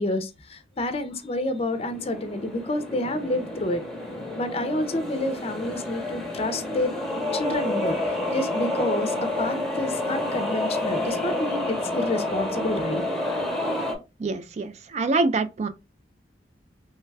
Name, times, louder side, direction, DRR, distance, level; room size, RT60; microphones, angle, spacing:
voice 1, 0.0-3.8 4.3-6.9 7.3-8.0 8.3-13.0, left 1 dB, 35° left, 0.5 m, -29 dB
sound 1, 1.5-14.0, left 1 dB, 5° left, 0.7 m, -29 dB
voice 2, 14.2-15.7, right 3 dB, 40° right, 0.3 m, -25 dB
3.2 x 2.3 x 3.2 m
head